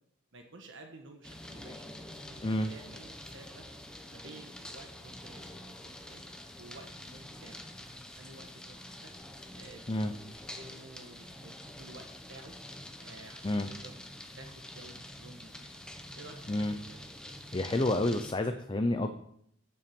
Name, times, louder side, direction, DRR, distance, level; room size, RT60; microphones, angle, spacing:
voice 1, 0.3-3.7 4.1-6.2 6.6-9.1 9.5-12.5 13.0-14.0 14.4-15.8 16.1-17.0, right 2 dB, 65° right, 4 dB, 1.4 m, -52 dB
sound 1, 1.2-18.3, left 1 dB, 5° left, 1.0 m, -47 dB
voice 2, 17.5-19.1, left 1 dB, 25° left, 6 dB, 0.6 m, -29 dB
8.8 x 7.0 x 7.0 m, 0.70 s
head